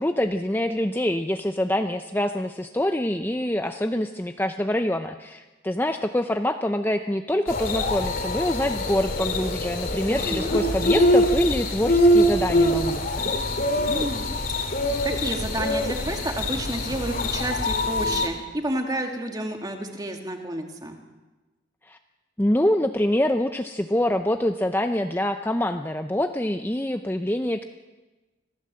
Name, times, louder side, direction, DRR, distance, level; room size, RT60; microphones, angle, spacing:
voice 1, 0.0-13.3 21.9-22.0 22.4-27.6, left 1 dB, 10° left, 7 dB, 0.6 m, -25 dB
sound 1, 7.5-18.3, left 1 dB, 45° left, 2.6 m, -24 dB
voice 2, 10.1-10.6 13.8-14.3 14.6-21.0, right 1 dB, 20° right, 3 dB, 2.3 m, -30 dB
26.0 x 16.0 x 7.7 m, 1.2 s
head